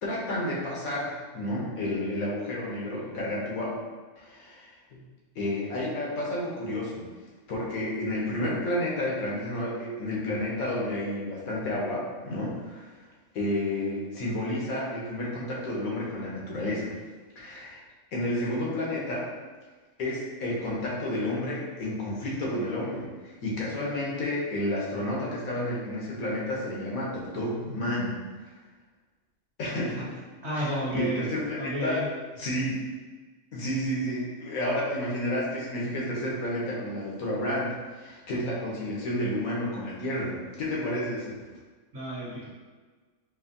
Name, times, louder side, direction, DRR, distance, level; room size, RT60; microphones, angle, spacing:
voice 1, 0.0-3.7 4.2-5.0 5.3-7.0 7.5-12.9 13.3-16.9 17.4-17.8 18.1-19.3 20.0-28.2 29.6-30.2 30.5-32.0 32.3-32.8 33.5-41.3, left 1 dB, 90° left, -5 dB, 1.4 m, -31 dB
voice 2, 30.4-31.2 31.6-32.1 41.9-42.5, equal, 50° right, -8 dB, 1.5 m, -31 dB
4.7 x 2.6 x 2.7 m, 1.4 s
omnidirectional pair, 1.4 m